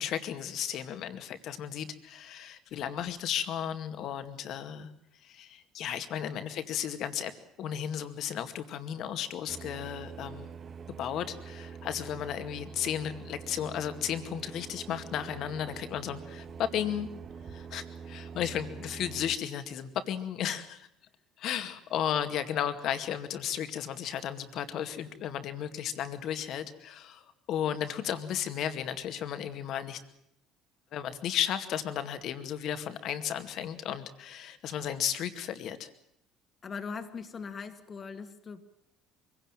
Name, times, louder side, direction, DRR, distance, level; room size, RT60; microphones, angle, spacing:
voice 1, 0.0-4.9 5.2-7.3 7.6-10.6 10.9-17.1 17.5-20.9 21.4-30.0 30.9-35.9, left 9 dB, 60° left, 9 dB, 2.2 m, -34 dB
sound 1, 9.5-19.4, right 6 dB, 45° right, 1.9 m, -45 dB
voice 2, 36.6-38.6, left 5 dB, 40° left, 7 dB, 2.1 m, -40 dB
23.5 x 17.0 x 9.0 m, 0.78 s
hypercardioid pair, 70°, 0 cm